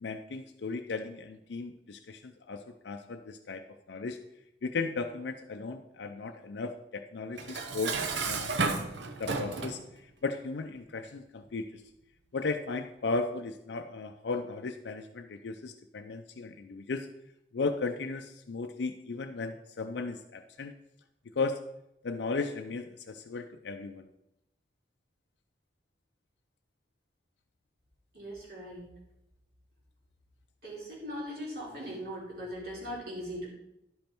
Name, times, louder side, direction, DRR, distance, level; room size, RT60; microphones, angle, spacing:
voice 1, 0.0-4.2 4.6-8.0 8.2-8.6 9.2-9.8 10.2-11.8 12.3-17.1 17.5-20.7 21.4-21.6 22.0-24.1, left 3 dB, 75° left, 5 dB, 0.5 m, -36 dB
Dishes pots and pans, 7.4-9.8, right 4 dB, 80° right, 0.8 m, -32 dB
voice 2, 28.1-28.8 30.6-33.5, equal, 55° right, -4 dB, 3.2 m, -39 dB
11.0 x 5.3 x 4.4 m, 0.86 s
head